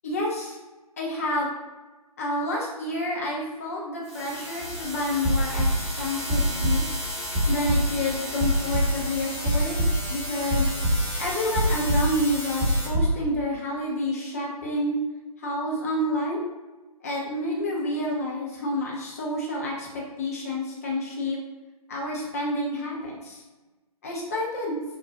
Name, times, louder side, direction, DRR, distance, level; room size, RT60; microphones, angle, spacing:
voice 1, 0.0-0.6 1.0-1.5 2.2-7.0 7.5-9.8 10.1-10.7 11.2-15.0 15.4-16.4 17.0-21.4 21.9-23.4 24.0-24.8, left 1 dB, 25° left, -3 dB, 0.5 m, -29 dB
sound 1, 4.0-12.9, equal, ahead, 0.8 m, -35 dB
sound 2, 4.6-4.8 5.1-6.0 6.3-6.9 7.3-8.0 8.4-9.1 9.4-10.1 10.5-11.3 11.5-13.1, right 1 dB, 20° right, 1.2 m, -24 dB
3.9 x 2.2 x 2.4 m, 1.2 s
figure-of-eight pair, 140°, 20 cm